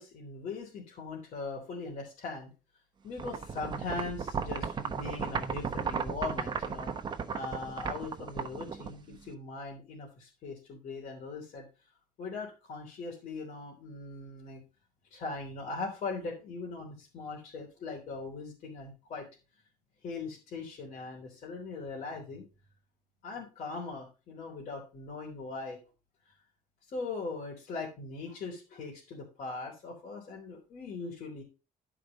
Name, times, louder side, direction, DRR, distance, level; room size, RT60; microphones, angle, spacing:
voice 1, 0.0-2.5 3.0-6.9 7.3-11.7 12.2-14.6 15.1-19.3 20.0-22.4 23.2-25.8 26.3-26.4 26.9-31.4, left 3 dB, 50° left, -4 dB, 3.5 m, -40 dB
sound 1, 3.2-9.3, right 6 dB, 30° right, 1.0 m, -35 dB
12.0 x 5.1 x 5.2 m, 0.31 s
cardioid pair, 145°, 15 cm